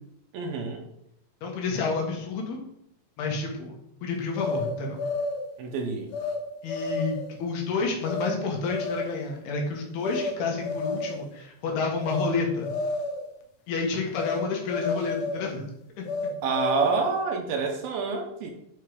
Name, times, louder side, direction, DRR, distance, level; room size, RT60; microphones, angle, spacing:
voice 1, 0.3-0.8 5.6-6.1 16.4-18.5, right 4 dB, 75° right, 3 dB, 2.6 m, -27 dB
voice 2, 1.4-2.6 3.2-5.0 6.6-12.7 13.7-15.7 16.0-16.1, left 4 dB, 90° left, 0 dB, 3.7 m, -30 dB
sound 1, 4.4-5.5 6.1-6.4 6.7-7.3 8.1-8.3 8.7-9.2 10.0-10.3 10.6-11.3 12.0-12.3 12.6-13.2 14.2-14.4 14.7-15.5 16.1-17.1, left 3 dB, 70° left, 2.3 m, -31 dB
10.0 x 4.7 x 5.1 m, 0.80 s
omnidirectional pair, 4.4 m